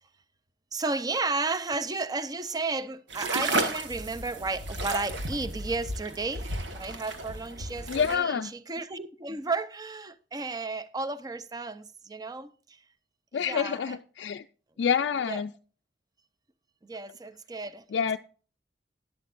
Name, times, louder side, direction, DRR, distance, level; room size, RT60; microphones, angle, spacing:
voice 1, 0.7-12.8 13.5-14.0 15.3-15.4 16.8-18.2, right 3 dB, 20° right, 0.5 m, -33 dB
sound 1, 3.1-8.2, right 2 dB, 75° right, 1.4 m, -33 dB
voice 2, 7.9-8.5 13.3-14.5 14.8-15.5 17.9-18.2, left 7 dB, 65° left, 0.3 m, -27 dB
12.0 x 11.5 x 2.5 m
head